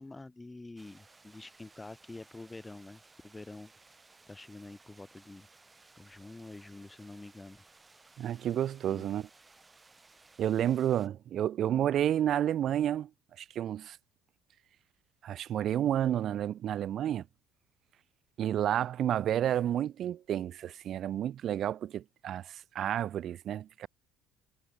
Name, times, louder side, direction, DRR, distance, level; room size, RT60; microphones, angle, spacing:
voice 1, 0.0-3.7 4.3-5.5 6.0-7.6 8.1-8.4 8.9-9.1, left 2 dB, 15° left, 3.7 m, -47 dB
sound 1, 0.8-11.1, right 3 dB, 20° right, 4.6 m, -60 dB
voice 2, 8.2-9.3 10.4-13.1 13.4-14.0 15.2-17.2 18.4-23.9, right 11 dB, 50° right, 0.5 m, -30 dB
hypercardioid pair, 55°, 0 cm